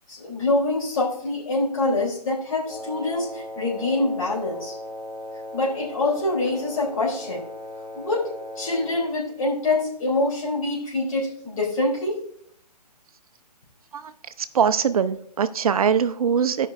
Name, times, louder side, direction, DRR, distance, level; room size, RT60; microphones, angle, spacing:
voice 1, 0.1-4.7 5.5-7.4 7.9-8.3 8.5-12.2, left 2 dB, 55° left, -4 dB, 3.3 m, -25 dB
Wind instrument woodwind instrument, 2.6-9.1, left 1 dB, 30° left, 2.3 m, -37 dB
voice 2, 14.5-16.7, right 7 dB, 60° right, 12 dB, 0.7 m, -21 dB
15.0 x 5.4 x 2.5 m, 0.67 s
hypercardioid pair, 140°, 21 cm